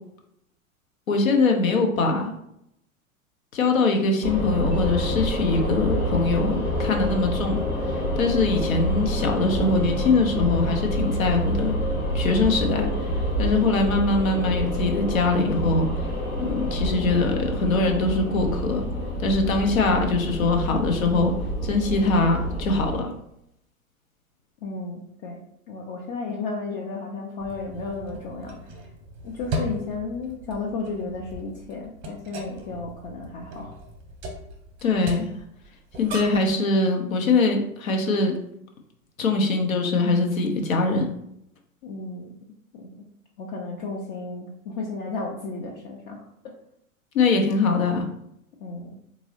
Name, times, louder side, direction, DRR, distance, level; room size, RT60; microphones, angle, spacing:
voice 1, 1.1-2.3 3.5-11.8 12.1-16.1 16.4-18.8 19.2-21.3 21.6-23.1 34.8-35.3 36.0-38.4 39.2-41.1 47.1-48.0, left 3 dB, 70° left, 3 dB, 0.8 m, -23 dB
sound 1, 4.2-23.0, equal, 90° left, 1.1 m, -27 dB
voice 2, 24.6-25.4 25.7-28.6 29.2-33.7 41.8-42.4 42.7-42.9 43.4-46.5 48.6-49.0, left 3 dB, 35° left, -1 dB, 0.5 m, -33 dB
sound 2, 27.4-36.5, right 1 dB, 25° right, 0.8 m, -37 dB
3.7 x 2.7 x 2.8 m, 0.77 s
figure-of-eight pair, 90°, 42 cm